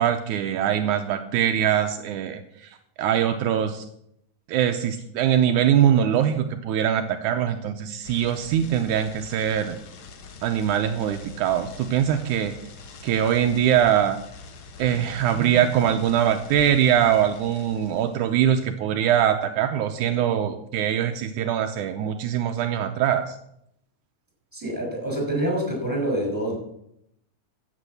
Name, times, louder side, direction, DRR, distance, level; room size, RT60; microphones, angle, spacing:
voice 1, 0.0-3.8 4.5-9.8 10.4-12.6 13.0-14.2 14.8-23.4, right 10 dB, 80° right, 6 dB, 2.2 m, -22 dB
sound 1, 8.0-18.3, left 4 dB, 50° left, 1.7 m, -44 dB
voice 2, 24.5-26.6, right 1 dB, 5° right, -1 dB, 6.1 m, -26 dB
14.5 x 8.5 x 6.7 m, 0.76 s
omnidirectional pair, 3.6 m